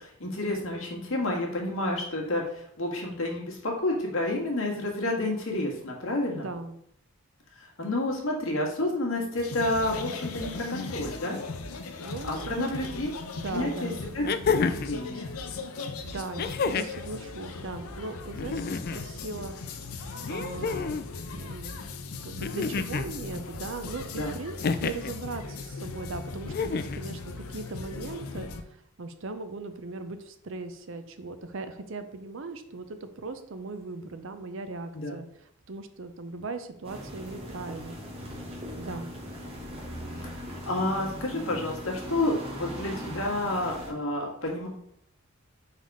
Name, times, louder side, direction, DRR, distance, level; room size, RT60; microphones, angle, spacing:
voice 1, 0.0-6.5 7.6-11.4 12.2-13.1 13.5-14.2 14.8-15.3 24.2-24.3 34.9-35.2 40.7-44.7, left 1 dB, 65° left, -1 dB, 1.7 m, -30 dB
voice 2, 6.3-6.8 12.0-12.9 13.4-14.1 16.0-19.6 19.8-21.1 21.3-21.8 22.1-38.0 38.2-38.4 38.8-39.1, right 3 dB, 60° right, 9 dB, 0.6 m, -39 dB
sound 1, 9.4-28.6, left 3 dB, 85° left, 0.6 m, -38 dB
sound 2, 13.2-13.3 14.2-15.0 16.4-17.0 18.3-19.0 20.3-21.1 22.4-23.1 24.6-25.1 26.5-27.0 28.4-28.5, left 5 dB, 45° left, 0.3 m, -29 dB
sound 3, 36.8-43.9, equal, 25° right, 1.4 m, -39 dB
4.8 x 4.1 x 5.3 m, 0.72 s
head